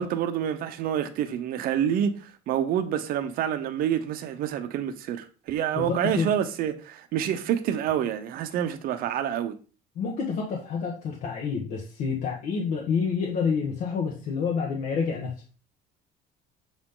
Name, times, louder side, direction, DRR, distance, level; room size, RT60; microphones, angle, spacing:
voice 1, 0.0-9.6, right 9 dB, 50° right, 0.8 m, -28 dB
voice 2, 5.7-6.3 9.9-15.3, left 5 dB, 50° left, 1.4 m, -28 dB
7.3 x 4.9 x 3.8 m
cardioid pair, 175°, 19 cm